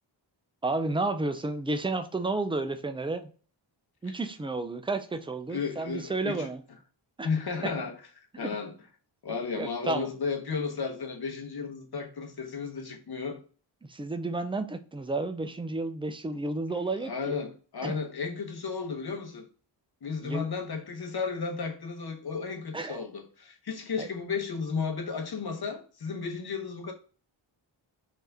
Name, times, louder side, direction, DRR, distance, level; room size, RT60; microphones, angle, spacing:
voice 1, 0.6-3.3 4.0-6.6 7.2-7.3 8.3-8.5 9.6-10.1 13.9-17.3 17.8-18.0 20.2-20.4 22.7-23.1 24.0-24.1, right 2 dB, 10° right, 0.3 m, -31 dB
voice 2, 5.5-6.5 7.2-8.0 8.4-8.7 9.2-13.4 16.9-19.5 20.0-26.9, left 5 dB, 55° left, 0.9 m, -34 dB
3.4 x 2.7 x 3.4 m
wide cardioid pair, 75°, 47 cm